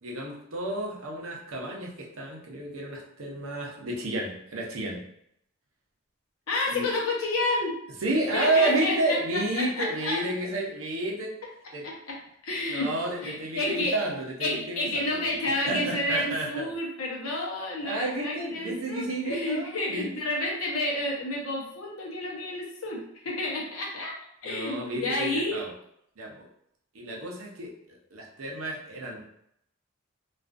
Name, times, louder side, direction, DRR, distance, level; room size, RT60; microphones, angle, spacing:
voice 1, 0.0-5.0 6.7-6.9 8.0-11.3 11.7-11.8 12.7-16.7 17.8-20.2 24.4-25.7 26.2-26.5 26.9-27.7 28.1-29.3, right 2 dB, 80° right, -1 dB, 0.6 m, -31 dB
voice 2, 6.5-7.8 8.2-10.2 11.8-12.9 13.2-14.0 14.4-24.2 24.4-25.6, left 2 dB, 85° left, -2 dB, 0.7 m, -30 dB
2.4 x 2.3 x 2.4 m, 0.74 s
head